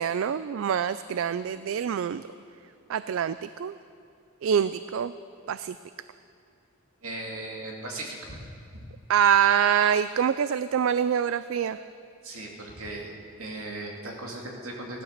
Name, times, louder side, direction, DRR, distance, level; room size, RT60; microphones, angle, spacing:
voice 1, 0.0-2.2 2.9-3.7 4.4-5.1 5.5-5.8 9.1-11.8, right 8 dB, 70° right, 14 dB, 0.3 m, -25 dB
voice 2, 7.0-8.9 12.2-13.1 13.4-15.0, right 2 dB, 85° right, 0 dB, 2.4 m, -38 dB
16.5 x 12.0 x 6.6 m, 2.5 s
head